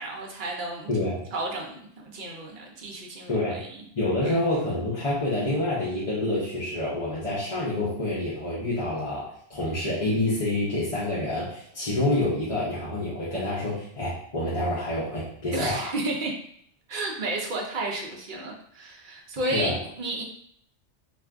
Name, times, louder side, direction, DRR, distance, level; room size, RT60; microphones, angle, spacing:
voice 1, 0.0-0.9 1.3-3.8 4.2-4.4 15.5-16.3 16.9-20.2, right 2 dB, 55° right, -1 dB, 0.6 m, -32 dB
voice 2, 0.9-1.2 3.3-3.6 3.9-15.9 19.4-19.8, left 1 dB, 35° left, -8 dB, 0.6 m, -27 dB
2.5 x 2.4 x 3.4 m, 0.66 s
omnidirectional pair, 1.2 m